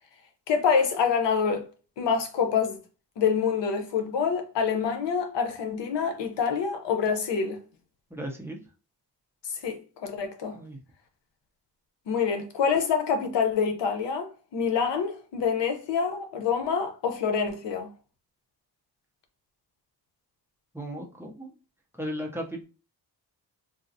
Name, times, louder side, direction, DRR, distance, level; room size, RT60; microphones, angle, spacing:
voice 1, 0.5-1.7 2.0-2.8 3.2-7.6 9.6-10.6 12.1-17.9, left 6 dB, 90° left, 0.8 m, -26 dB
voice 2, 8.1-8.6 10.5-10.8 20.7-21.5 22.0-22.6, equal, 5° right, 0.5 m, -36 dB
3.9 x 2.4 x 2.6 m
wide cardioid pair, 135°, 41 cm